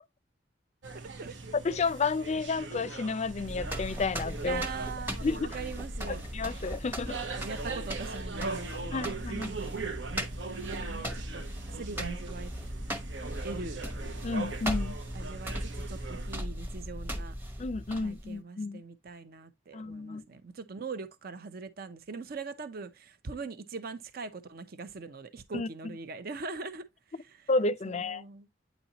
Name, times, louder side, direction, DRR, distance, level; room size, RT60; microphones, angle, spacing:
sound 1, 0.8-16.4, right 3 dB, 80° right, 0.9 m, -40 dB
voice 1, 0.9-1.4 4.4-6.2 7.3-9.7 10.4-11.4 11.7-12.5 13.4-13.8 15.1-17.3 18.0-27.5 27.8-28.5, right 4 dB, 55° right, 0.6 m, -42 dB
voice 2, 1.5-4.6 5.2-5.5 6.1-7.2 8.9-9.5 14.2-15.0 17.6-18.8 19.7-20.2 25.5-25.7 27.5-28.2, left 3 dB, 40° left, 0.5 m, -31 dB
sound 2, 3.2-18.3, equal, 10° right, 0.9 m, -38 dB
9.1 x 4.1 x 2.9 m
head